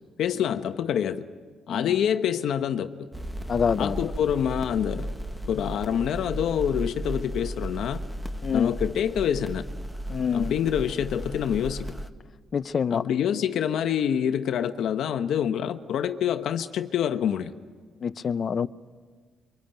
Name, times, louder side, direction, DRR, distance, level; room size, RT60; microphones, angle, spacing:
voice 1, 0.2-1.3 1.7-2.9 3.8-5.1 5.5-8.0 8.5-9.6 10.3-11.8 12.9-17.5, left 9 dB, 75° left, 1.0 m, -26 dB
sound 1, 3.1-12.1, right 1 dB, ahead, 1.3 m, -35 dB
voice 2, 3.5-4.0 8.4-8.7 10.1-10.5 12.5-13.0 18.0-18.7, left 6 dB, 50° left, 0.8 m, -26 dB
24.0 x 23.5 x 9.1 m
cardioid pair, 90°, 0 cm